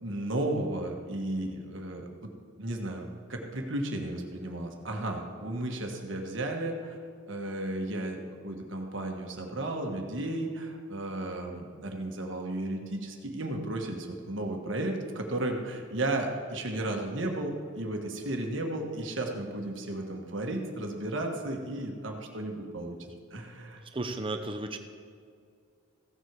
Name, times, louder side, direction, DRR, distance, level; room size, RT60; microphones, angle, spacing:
voice 1, 0.0-2.3 2.6-7.0 7.3-23.0 23.3-23.8, right 1 dB, 65° right, 2 dB, 1.5 m, -34 dB
voice 2, 23.9-24.8, right 2 dB, 25° right, 6 dB, 0.8 m, -33 dB
15.5 x 7.8 x 4.7 m, 2.2 s
head